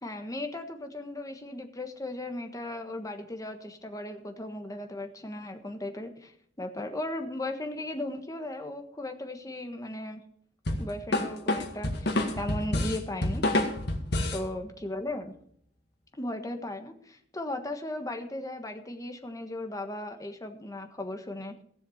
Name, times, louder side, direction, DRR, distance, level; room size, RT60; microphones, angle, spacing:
voice 1, 0.0-6.3 6.6-10.2 10.8-13.4 14.3-15.3 16.1-21.6, left 1 dB, 20° left, 5 dB, 1.4 m, -36 dB
sound 1, 10.7-14.5, left 1 dB, 60° left, 1.9 m, -28 dB
15.5 x 7.2 x 7.1 m, 0.65 s
head